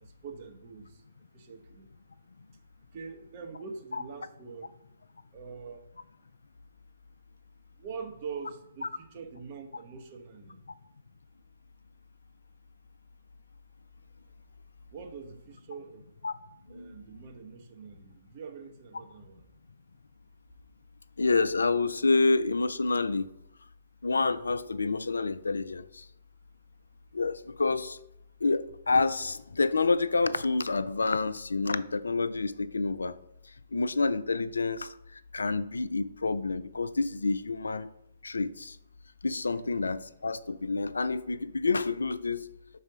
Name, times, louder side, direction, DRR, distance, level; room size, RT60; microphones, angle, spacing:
voice 1, 0.0-1.0 1.3-1.9 2.9-4.7 5.3-5.8 7.8-10.6 14.9-16.1 16.7-19.4, right 5 dB, 35° right, 5 dB, 0.8 m, -44 dB
voice 2, 21.2-23.3 24.0-26.0 27.1-28.0 28.4-33.1 33.7-34.9 35.3-37.9 38.2-38.8 39.2-42.5, left 3 dB, 70° left, 14 dB, 0.3 m, -28 dB
5.3 x 4.0 x 5.0 m, 0.81 s
figure-of-eight pair, 125°, 0 cm